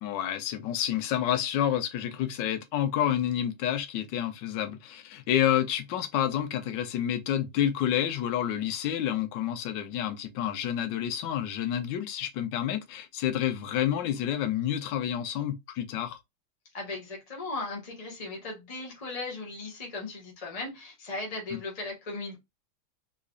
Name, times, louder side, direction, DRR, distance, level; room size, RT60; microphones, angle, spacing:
voice 1, 0.0-16.2, left 10 dB, 70° left, 1.2 m, -29 dB
voice 2, 16.7-22.4, left 3 dB, 25° left, 0.9 m, -37 dB
3.7 x 3.1 x 2.3 m
omnidirectional pair, 2.2 m